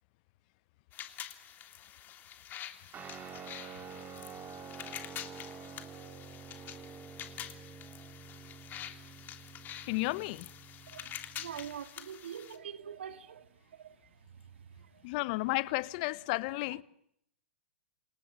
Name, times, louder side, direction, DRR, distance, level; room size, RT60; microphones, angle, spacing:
sound 1, 0.9-12.6, left 10 dB, 30° left, 3.1 m, -47 dB
Guitar, 2.9-11.7, right 5 dB, 25° right, 5.0 m, -48 dB
voice 1, 9.8-10.5 15.0-16.8, left 22 dB, 50° left, 1.2 m, -32 dB
voice 2, 10.9-15.1, right 8 dB, 80° right, 2.5 m, -46 dB
29.0 x 27.0 x 7.4 m
hypercardioid pair, 115°, 6 cm